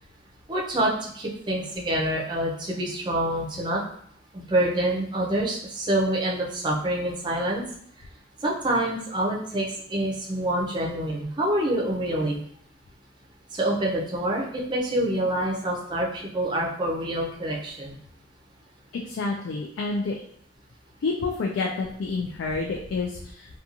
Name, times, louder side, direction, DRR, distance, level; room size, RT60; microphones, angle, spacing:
voice 1, 0.5-3.8 4.3-7.6 8.4-12.4 13.5-18.0, right 1 dB, 25° right, -3 dB, 0.5 m, -26 dB
voice 2, 18.9-20.2 21.0-23.5, left 3 dB, 85° left, 0 dB, 0.3 m, -29 dB
2.5 x 2.2 x 2.8 m, 0.68 s
head